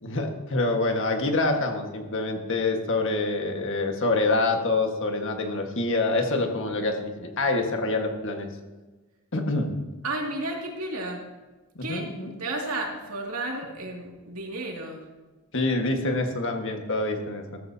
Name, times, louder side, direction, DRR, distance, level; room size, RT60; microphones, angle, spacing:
voice 1, 0.0-8.5 9.3-9.7 11.9-12.3 15.5-17.6, left 2 dB, 60° left, 3 dB, 1.6 m, -26 dB
voice 2, 10.0-11.3 11.8-12.1 12.4-15.0, right 2 dB, 70° right, 0 dB, 2.5 m, -32 dB
14.5 x 14.0 x 2.8 m, 1.2 s
head